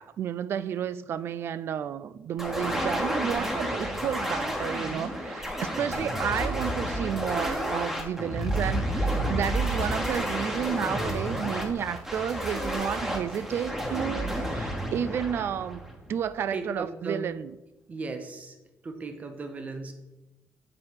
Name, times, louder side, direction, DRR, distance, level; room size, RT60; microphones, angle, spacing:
voice 1, 0.0-15.8 16.1-17.6, right 9 dB, 55° right, 0.3 m, -31 dB
sound 1, 2.4-16.3, equal, 10° right, 1.1 m, -30 dB
voice 2, 16.5-17.3 17.9-18.5 18.8-19.9, right 3 dB, 30° right, 0.8 m, -36 dB
7.4 x 4.5 x 4.8 m
cardioid pair, 140°, 5 cm